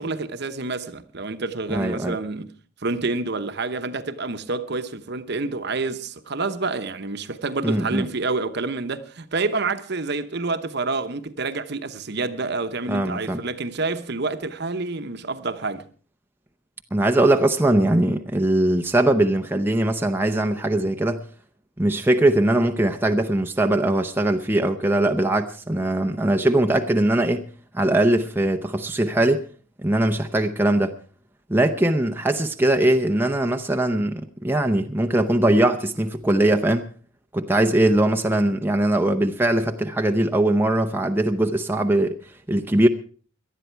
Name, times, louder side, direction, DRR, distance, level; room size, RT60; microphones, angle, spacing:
voice 1, 0.0-2.5 2.8-15.8, right 3 dB, 50° right, 1.0 m, -28 dB
voice 2, 1.7-2.2 7.6-8.1 12.9-13.4 16.9-21.3 21.8-27.5 27.7-29.5 29.8-31.0 31.5-36.9 37.3-42.2 42.5-42.9, right 1 dB, 10° right, 0.7 m, -21 dB
18.5 x 12.0 x 4.6 m
head